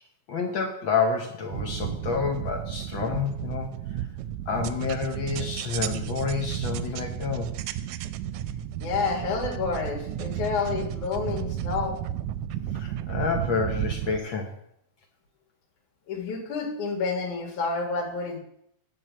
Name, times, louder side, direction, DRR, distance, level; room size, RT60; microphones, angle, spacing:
voice 1, 0.3-3.7 4.5-7.5 12.7-14.6, left 5 dB, 70° left, 4 dB, 1.1 m, -29 dB
sound 1, 1.5-14.2, right 11 dB, 80° right, 1.7 m, -33 dB
voice 2, 8.8-12.0 16.1-18.4, left 4 dB, 85° left, 2 dB, 3.3 m, -29 dB
10.0 x 4.6 x 7.5 m, 0.73 s
omnidirectional pair, 3.4 m